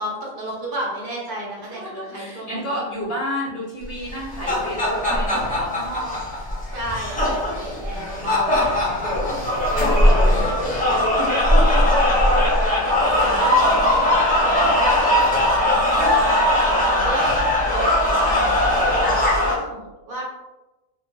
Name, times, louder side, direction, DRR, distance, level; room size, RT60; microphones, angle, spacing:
voice 1, 0.0-2.8 6.7-9.1 9.7-11.8 12.1-12.3 13.1-17.3 17.7-20.2, right 1 dB, 50° right, -3 dB, 0.7 m, -34 dB
voice 2, 1.7-6.2 7.0-7.2 7.8-8.3 9.7-10.5 13.0-14.3 16.8-17.3, equal, 30° left, -7 dB, 1.1 m, -32 dB
sound 1, 4.1-19.5, left 1 dB, 10° left, 0.7 m, -19 dB
2.9 x 2.2 x 2.7 m, 1.0 s
omnidirectional pair, 1.4 m